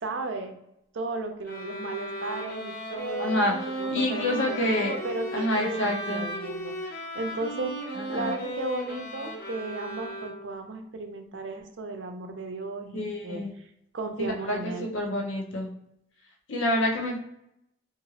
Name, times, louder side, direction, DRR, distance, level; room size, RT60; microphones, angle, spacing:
voice 1, 0.0-0.6 0.9-7.7 8.1-13.7 13.9-14.9, right 2 dB, 75° right, 5 dB, 0.5 m, -35 dB
sound 1, 1.4-10.7, right 1 dB, 45° left, 0.6 m, -36 dB
voice 2, 3.2-3.5 3.9-4.9 5.3-6.3 8.0-8.3 12.9-13.5 14.2-15.7 16.5-17.2, left 1 dB, 80° left, 0 dB, 0.7 m, -27 dB
2.9 x 2.5 x 2.8 m, 0.78 s
head